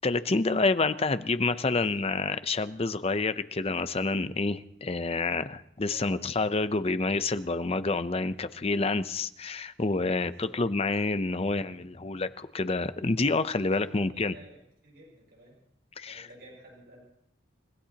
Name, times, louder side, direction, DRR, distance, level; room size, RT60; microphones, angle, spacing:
voice 1, 0.0-14.3 16.0-16.3, left 3 dB, 35° left, 12 dB, 0.6 m, -28 dB
voice 2, 1.3-2.1 5.8-6.0 10.2-10.6 13.6-14.6 14.8-15.6 16.0-17.0, right 1 dB, 60° right, -3 dB, 6.8 m, -53 dB
30.0 x 16.0 x 2.9 m, 0.72 s
head